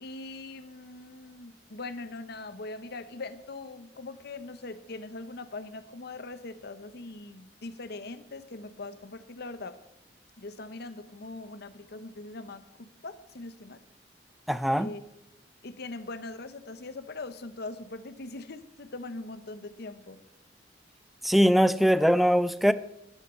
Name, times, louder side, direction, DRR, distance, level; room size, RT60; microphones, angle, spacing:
voice 1, 0.0-9.8 10.4-13.8 14.8-15.0 15.6-20.2, left 2 dB, 60° left, 12 dB, 0.9 m, -41 dB
voice 2, 14.5-14.9 21.2-22.7, equal, ahead, 15 dB, 0.4 m, -21 dB
12.0 x 8.5 x 5.7 m, 0.85 s
head